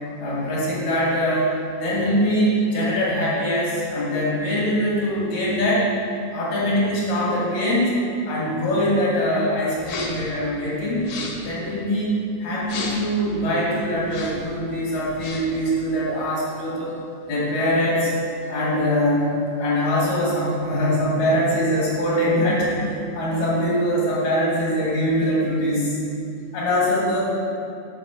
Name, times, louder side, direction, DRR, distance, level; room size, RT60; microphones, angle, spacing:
voice 1, 0.2-1.5 1.8-5.8 6.3-11.2 11.4-12.1 12.4-17.0 17.3-18.1 18.5-19.3 19.6-26.0 26.5-27.2, equal, 80° left, -6 dB, 3.7 m, -22 dB
sound 1, 9.8-10.3 10.9-11.5 12.6-13.2 14.0-14.5 15.0-15.6, left 3 dB, 65° left, 1.6 m, -33 dB
7.7 x 5.3 x 6.6 m, 2.7 s
omnidirectional pair, 3.8 m